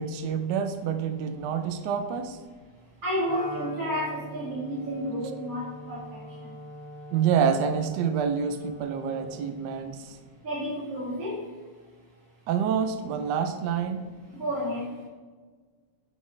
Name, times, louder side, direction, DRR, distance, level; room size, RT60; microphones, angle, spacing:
voice 1, 0.0-2.4 7.1-10.2 12.5-14.0, right 7 dB, 70° right, 8 dB, 1.2 m, -27 dB
voice 2, 3.0-6.0 10.4-11.4 14.3-14.9, equal, 50° right, -9 dB, 2.2 m, -31 dB
Wind instrument woodwind instrument, 3.2-9.6, equal, 35° left, 1.2 m, -43 dB
9.6 x 5.4 x 3.3 m, 1.5 s
omnidirectional pair, 2.1 m